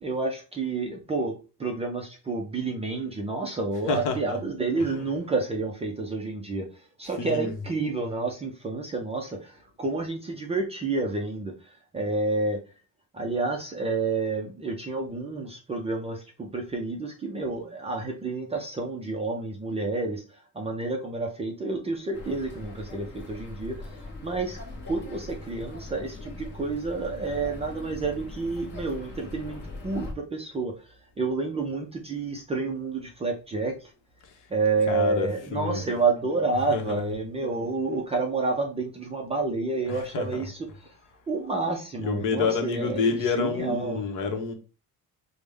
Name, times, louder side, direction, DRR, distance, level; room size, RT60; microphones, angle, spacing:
voice 1, 0.0-6.7 7.0-12.6 13.1-20.2 20.5-24.0 24.2-24.6 24.8-33.9 34.5-40.6 41.3-44.0, right 3 dB, 20° right, 0.3 m, -29 dB
voice 2, 3.9-4.4 4.8-5.1 7.1-7.7 34.9-35.8 36.7-37.2 39.9-40.5 41.9-44.5, left 4 dB, 55° left, 0.9 m, -29 dB
sound 1, 22.1-30.1, left 2 dB, 30° left, 0.9 m, -41 dB
5.0 x 2.1 x 3.3 m
cardioid pair, 180°, 37 cm